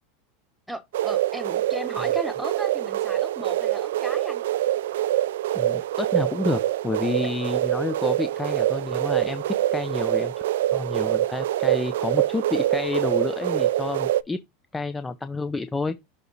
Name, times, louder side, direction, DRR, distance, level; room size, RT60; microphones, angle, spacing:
voice 1, 0.7-4.4, equal, ahead, 1.3 m, -36 dB
sound 1, 0.9-14.2, right 13 dB, 80° right, 0.3 m, -25 dB
voice 2, 5.5-9.4 9.7-10.3 10.7-14.4 14.7-16.0, left 3 dB, 15° left, 0.6 m, -29 dB
6.7 x 3.5 x 4.1 m
hypercardioid pair, 110°, 0 cm